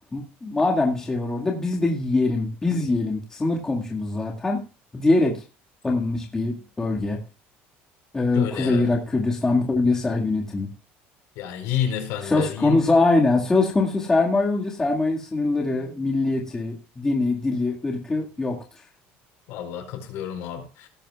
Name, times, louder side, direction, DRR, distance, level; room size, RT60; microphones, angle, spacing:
voice 1, 0.1-4.6 4.9-5.4 5.8-7.2 8.1-10.7 12.3-18.6, left 3 dB, 10° left, 1.9 m, -23 dB
voice 2, 8.3-9.0 11.3-12.8 19.5-20.9, left 9 dB, 70° left, 4.6 m, -30 dB
18.0 x 9.0 x 2.3 m
cardioid pair, 155°, 5 cm